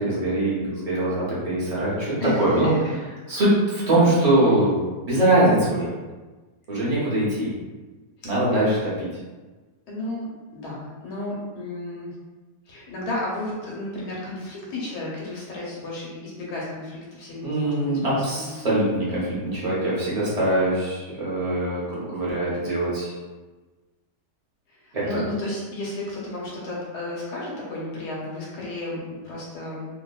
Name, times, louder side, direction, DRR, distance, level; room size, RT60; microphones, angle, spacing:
voice 1, 0.0-2.7 3.3-4.8 5.1-5.9 6.7-7.5 8.2-9.1 17.4-23.1 24.9-25.2, right 1 dB, 60° right, -8 dB, 0.4 m, -22 dB
voice 2, 2.2-3.0 8.2-8.6 9.9-12.1 12.7-18.5 24.7-29.9, left 1 dB, 75° left, -5 dB, 1.2 m, -33 dB
2.7 x 2.5 x 2.2 m, 1.3 s
omnidirectional pair, 1.8 m